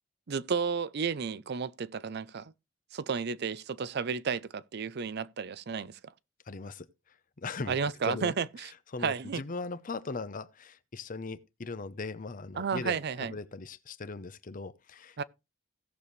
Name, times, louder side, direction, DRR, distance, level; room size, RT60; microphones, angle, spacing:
voice 1, 0.3-2.5 2.9-6.0 7.7-8.7 9.0-9.4 12.6-13.3 15.2-15.3, right 6 dB, 55° right, 0.5 m, -32 dB
voice 2, 6.5-7.8 8.0-15.2, left 3 dB, 45° left, 0.7 m, -39 dB
16.5 x 6.9 x 3.2 m
head